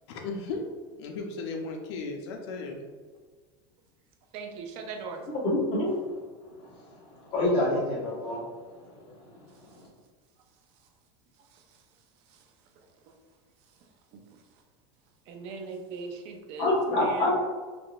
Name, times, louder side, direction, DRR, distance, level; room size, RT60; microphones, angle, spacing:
voice 1, 0.1-0.6 1.0-2.8, left 3 dB, 90° left, 2 dB, 0.5 m, -35 dB
voice 2, 4.3-5.2 11.5-11.6 12.3-12.4 14.1-14.2 15.3-17.3, right 3 dB, 45° right, 4 dB, 0.4 m, -39 dB
voice 3, 5.3-6.0 7.2-8.4 9.0-9.1 16.6-17.3, left 1 dB, 40° left, -5 dB, 1.0 m, -26 dB
3.7 x 2.4 x 2.2 m, 1.5 s
supercardioid pair, 160°, 14 cm